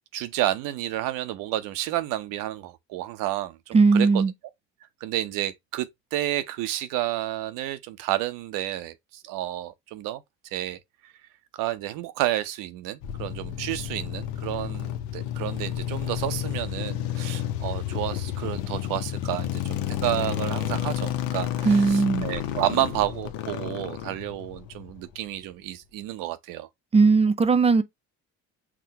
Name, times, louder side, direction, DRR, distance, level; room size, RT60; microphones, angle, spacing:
voice 1, 0.1-4.2 5.0-11.1 11.5-26.7, right 14 dB, 80° right, 0.7 m, -30 dB
voice 2, 3.7-4.3 21.7-22.3 26.9-27.8, right 4 dB, 20° right, 0.4 m, -18 dB
sound 1, 13.0-25.3, left 11 dB, 85° left, 0.7 m, -31 dB
6.0 x 2.1 x 2.7 m
cardioid pair, 100°, 33 cm